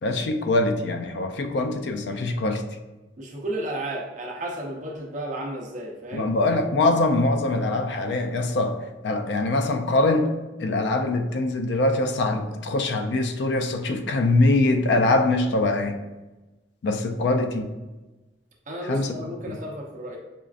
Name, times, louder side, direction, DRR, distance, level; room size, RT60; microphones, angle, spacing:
voice 1, 0.0-2.6 6.1-10.3 10.6-16.0 16.8-17.7 18.9-19.1 19.5-19.6, left 2 dB, 75° left, 6 dB, 0.4 m, -23 dB
voice 2, 3.2-6.3 18.7-20.2, right 1 dB, 45° right, -2 dB, 0.6 m, -33 dB
5.1 x 2.4 x 2.4 m, 1.1 s
head